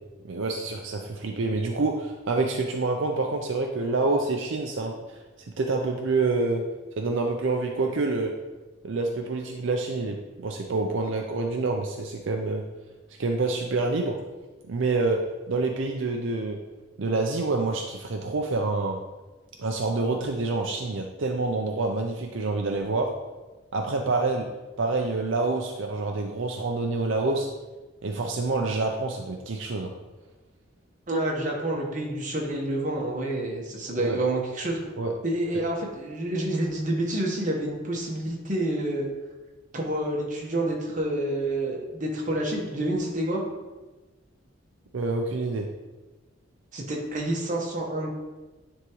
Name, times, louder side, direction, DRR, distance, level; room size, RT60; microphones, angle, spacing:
voice 1, 0.2-5.2 5.6-6.6 7.0-8.3 8.8-12.6 13.2-14.1 14.7-15.2 15.5-16.6 17.0-19.0 19.6-23.1 23.7-24.4 24.8-27.5 28.0-29.9 34.0-34.2 35.0-35.1 44.9-45.7, right 3 dB, 75° right, 2 dB, 0.5 m, -27 dB
voice 2, 31.1-34.8 35.2-39.1 39.7-43.4 46.7-48.1, right 1 dB, 40° right, -1 dB, 1.2 m, -28 dB
9.7 x 3.6 x 3.1 m, 1.2 s
head